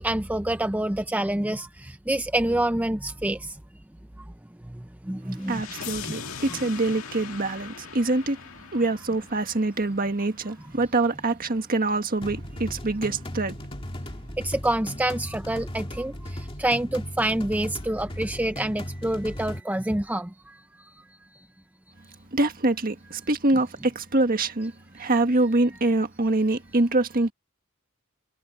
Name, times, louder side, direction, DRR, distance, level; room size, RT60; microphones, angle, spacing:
voice 1, 0.0-3.5 5.1-5.6 14.4-16.1 16.6-20.3, right 1 dB, 10° right, 0.6 m, -27 dB
sound 1, 5.4-10.4, left 6 dB, 80° left, 2.0 m, -40 dB
voice 2, 5.5-8.4 8.7-13.6 22.3-27.3, right 2 dB, 45° right, 1.7 m, -25 dB
sound 2, 12.2-19.6, equal, 25° left, 2.1 m, -37 dB
head